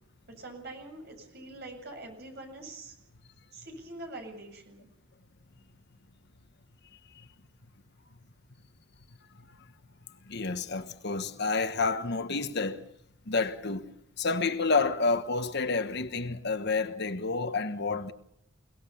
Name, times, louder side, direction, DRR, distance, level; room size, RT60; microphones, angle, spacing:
voice 1, 0.3-2.9 3.5-4.9, right 2 dB, 50° right, 7.6 m, -44 dB
voice 2, 10.3-12.8 13.3-18.1, left 4 dB, 55° left, 1.3 m, -29 dB
29.0 x 18.5 x 7.1 m
head